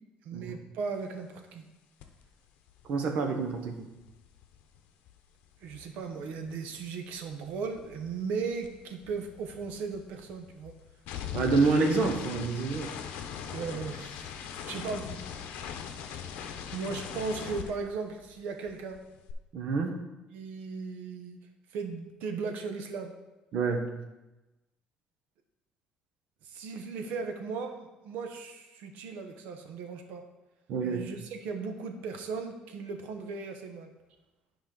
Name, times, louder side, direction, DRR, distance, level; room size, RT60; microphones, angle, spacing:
voice 1, 0.2-1.7 5.6-10.7 13.5-14.3 14.7-15.2 16.7-19.0 20.3-21.4 21.7-23.1 26.4-30.2 30.8-33.9, right 5 dB, 80° right, 5 dB, 1.0 m, -37 dB
sound 1, 2.0-2.2 2.5-6.9 7.1-18.4 18.7-19.3, left 8 dB, 80° left, 0.8 m, -41 dB
voice 2, 2.9-3.9 11.3-12.9 19.5-19.9 23.5-23.9 30.7-31.0, right 4 dB, 60° right, 4 dB, 1.0 m, -27 dB
9.9 x 5.1 x 3.9 m, 1.0 s
cardioid pair, 160°, 3 cm